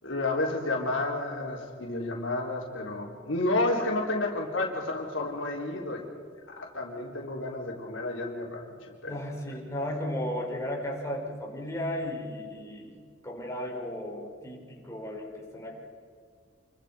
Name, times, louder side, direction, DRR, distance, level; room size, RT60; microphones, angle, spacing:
voice 1, 0.0-6.1 6.5-8.7 9.0-9.1, left 2 dB, 80° left, -1 dB, 4.0 m, -31 dB
voice 2, 9.1-13.0 13.2-15.8, left 1 dB, 15° left, -2 dB, 5.2 m, -35 dB
29.0 x 24.0 x 5.2 m, 2.1 s
head